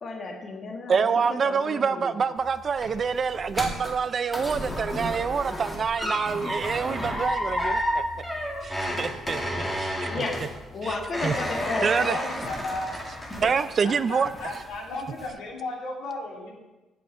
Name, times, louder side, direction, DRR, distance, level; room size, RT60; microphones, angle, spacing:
voice 1, 0.0-2.2 10.1-10.4 10.7-11.9, left 3 dB, 35° left, 1 dB, 1.7 m, -33 dB
voice 2, 0.9-8.0 8.6-9.4 9.8-10.1 10.8-11.3 11.8-12.2 13.4-14.3, right 6 dB, 35° right, 13 dB, 0.4 m, -26 dB
sound 1, 2.4-13.9 14.3-14.8 15.2-15.3, equal, 10° left, 2.1 m, -31 dB
voice 3, 11.5-13.0 13.8-16.5, left 2 dB, 80° left, -2 dB, 3.5 m, -35 dB
16.5 x 8.3 x 4.4 m, 1.1 s
cardioid pair, 160°, 0 cm